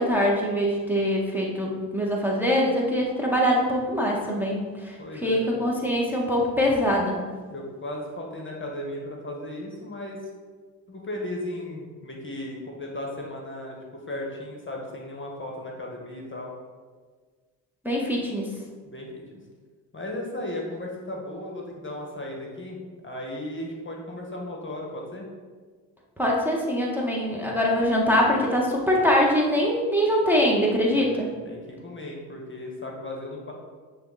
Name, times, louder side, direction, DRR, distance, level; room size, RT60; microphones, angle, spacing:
voice 1, 0.0-5.0 5.2-7.2 17.8-18.5 26.2-31.3, equal, 5° right, -4 dB, 1.8 m, -23 dB
voice 2, 5.0-5.5 7.5-10.2 10.9-16.5 18.8-19.4 19.9-22.8 23.0-25.3 31.0-33.5, left 1 dB, 25° left, -1 dB, 1.7 m, -36 dB
9.3 x 3.9 x 4.3 m, 1.5 s
hypercardioid pair, 45°, 46 cm